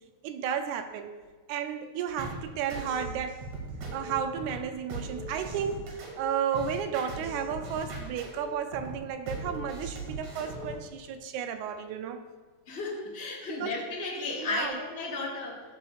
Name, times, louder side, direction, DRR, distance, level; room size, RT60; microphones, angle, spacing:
voice 1, 0.2-1.1 1.5-3.5 3.9-12.2 13.5-13.7 14.4-14.7, right 8 dB, 90° right, 8 dB, 2.0 m, -33 dB
sound 1, 2.2-10.8, right 1 dB, 70° right, 2.9 m, -39 dB
voice 2, 12.7-15.6, left 3 dB, 25° left, -5 dB, 1.6 m, -34 dB
13.0 x 7.9 x 2.5 m, 1.4 s
omnidirectional pair, 3.3 m